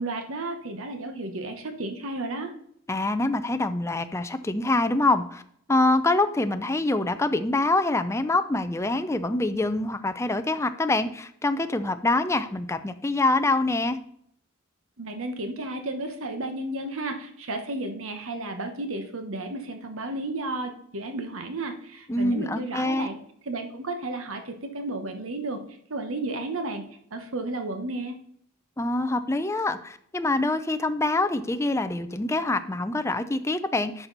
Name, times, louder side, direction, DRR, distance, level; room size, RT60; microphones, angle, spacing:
voice 1, 0.0-2.5 15.0-23.2 23.4-26.8 27.1-28.1, right 2 dB, 70° right, 6 dB, 1.1 m, -33 dB
voice 2, 2.9-5.4 5.7-14.0 22.1-23.1 28.8-34.1, left 2 dB, 15° left, 9 dB, 0.5 m, -25 dB
11.0 x 6.0 x 4.0 m, 0.67 s
head